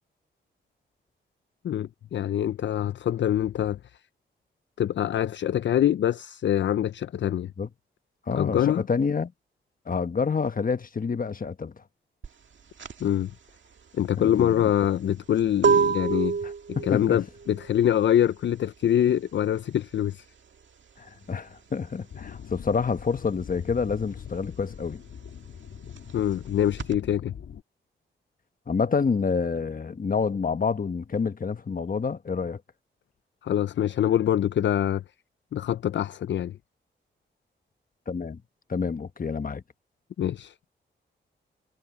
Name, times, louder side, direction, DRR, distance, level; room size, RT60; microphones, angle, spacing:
voice 1, 1.6-3.8 4.8-7.5 8.4-8.8 13.0-13.3 13.9-16.4 16.8-20.2 26.1-27.3 33.4-35.0 35.5-36.6 40.2-40.6, left 10 dB, 65° left, 0.4 m, -24 dB
voice 2, 8.3-9.3 9.9-11.7 14.2-14.7 16.4-16.5 16.8-17.2 21.0-25.0 28.7-32.6 38.1-38.4 38.7-39.6, left 5 dB, 45° left, 1.3 m, -28 dB
sound 1, 12.2-22.5 22.7-27.0, right 6 dB, 70° right, 1.9 m, -29 dB
sound 2, 22.1-27.6, left 8 dB, 85° left, 2.3 m, -42 dB
cardioid pair, 70°, 20 cm